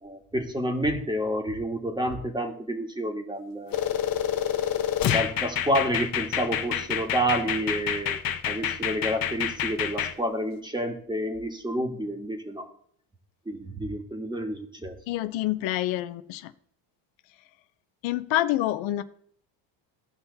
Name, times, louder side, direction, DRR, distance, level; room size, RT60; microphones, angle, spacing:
voice 1, 0.0-3.9 5.1-12.6 13.5-15.0, equal, 10° right, 4 dB, 1.7 m, -29 dB
sound 1, 3.7-10.1, left 9 dB, 50° left, 1.1 m, -28 dB
voice 2, 15.1-16.5 18.0-19.0, left 14 dB, 85° left, 12 dB, 0.8 m, -27 dB
16.5 x 5.8 x 4.1 m, 0.62 s
cardioid pair, 125°, 45 cm